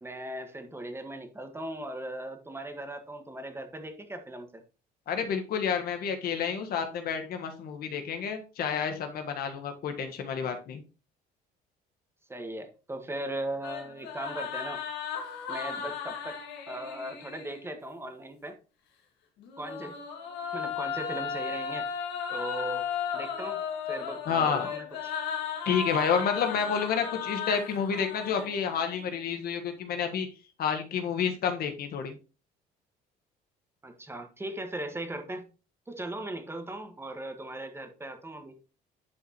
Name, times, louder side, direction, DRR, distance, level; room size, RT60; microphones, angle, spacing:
voice 1, 0.0-4.6 12.3-14.8 15.5-16.4 16.7-18.6 19.6-20.0 20.5-21.9 22.3-22.9 23.1-23.6 23.9-25.1 33.8-35.4 35.9-38.6, right 1 dB, 15° right, 6 dB, 1.5 m, -38 dB
voice 2, 5.1-10.8 24.3-24.7 25.6-30.3 30.6-32.2, left 7 dB, 65° left, 6 dB, 1.5 m, -29 dB
sound 1, 13.6-17.6 19.4-28.9, left 7 dB, 85° left, 1.9 m, -35 dB
10.5 x 5.0 x 3.0 m, 0.32 s
cardioid pair, 110°, 17 cm